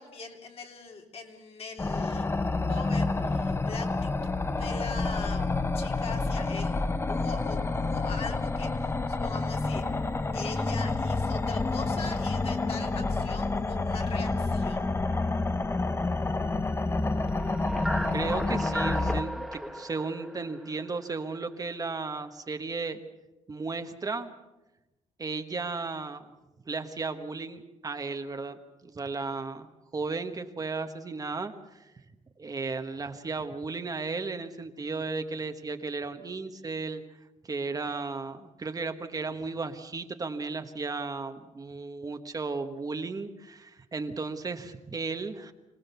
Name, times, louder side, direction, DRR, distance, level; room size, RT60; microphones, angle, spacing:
voice 1, 0.0-2.4 2.7-5.5 5.7-6.8 7.1-9.8 10.3-14.9, left 4 dB, 55° left, 2 dB, 3.2 m, -41 dB
sound 1, 1.8-19.2, left 3 dB, 20° left, 0.8 m, -29 dB
sound 2, 17.1-21.4, right 1 dB, ahead, 1.5 m, -35 dB
voice 2, 18.1-23.0 23.5-24.3 25.2-26.3 26.7-31.8 32.4-37.0 37.4-45.5, right 4 dB, 30° right, 7 dB, 1.4 m, -35 dB
26.0 x 18.0 x 6.9 m, 1.0 s
cardioid pair, 110°, 12 cm